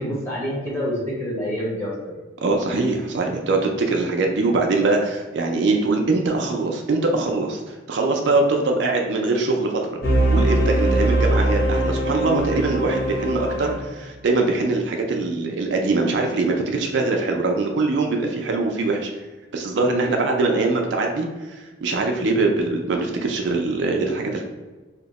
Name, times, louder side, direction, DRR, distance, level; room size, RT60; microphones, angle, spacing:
voice 1, 0.0-2.1, equal, 10° left, -6 dB, 0.9 m, -27 dB
voice 2, 2.4-10.0 10.3-19.1 19.5-24.4, right 3 dB, 60° right, 2 dB, 0.4 m, -22 dB
sound 1, 10.0-13.9, right 1 dB, 55° left, 0.7 m, -21 dB
2.7 x 2.1 x 3.9 m, 1.2 s
head